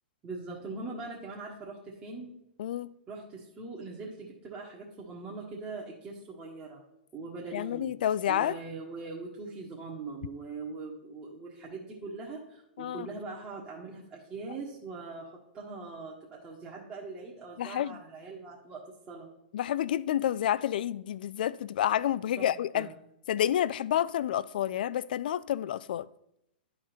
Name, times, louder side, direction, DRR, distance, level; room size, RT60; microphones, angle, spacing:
voice 1, 0.2-2.3 3.1-6.8 7.1-7.9 8.3-15.3 15.5-19.3 22.4-22.5 22.7-22.9, right 3 dB, 25° right, 1.4 m, -41 dB
voice 2, 2.6-2.9 7.5-8.6 12.8-13.1 17.6-18.0 19.5-22.9 23.3-26.1, left 11 dB, 60° left, 0.3 m, -29 dB
11.0 x 3.8 x 4.4 m
hypercardioid pair, 110°, 5 cm